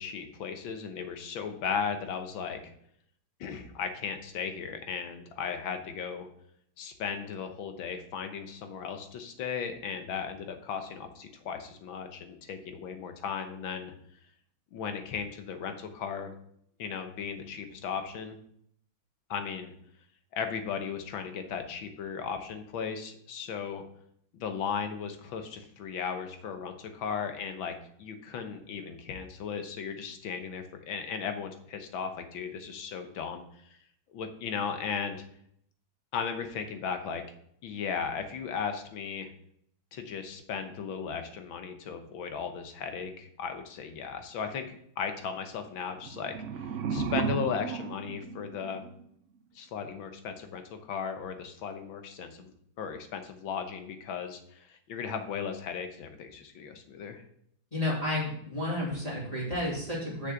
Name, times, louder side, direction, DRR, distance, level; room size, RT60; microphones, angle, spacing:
voice 1, 0.0-2.7 3.4-6.3 6.8-13.9 14.7-16.3 16.8-18.4 19.3-19.7 20.3-23.8 24.3-27.7 28.0-33.8 34.1-35.2 36.1-37.2 37.6-39.3 39.9-48.9 49.5-57.2, left 6 dB, 90° left, 6 dB, 1.8 m, -36 dB
sound 1, 46.0-49.0, right 6 dB, 90° right, 0.6 m, -34 dB
voice 2, 57.7-60.3, left 1 dB, 20° left, -6 dB, 3.0 m, -31 dB
6.5 x 6.4 x 5.9 m, 0.68 s
omnidirectional pair, 2.1 m